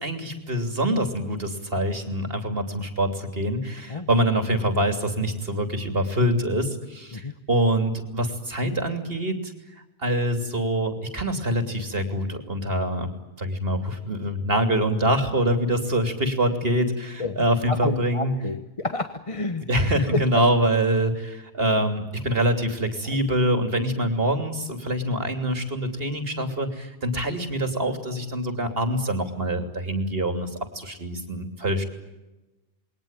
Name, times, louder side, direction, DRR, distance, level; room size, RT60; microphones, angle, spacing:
voice 1, 0.0-9.5 10.0-13.1 13.4-18.4 19.7-31.8, right 1 dB, 65° right, 6 dB, 3.3 m, -25 dB
voice 2, 17.2-19.7 20.1-20.2, left 2 dB, 35° left, 9 dB, 1.2 m, -29 dB
29.0 x 21.5 x 9.0 m, 1.0 s
omnidirectional pair, 1.0 m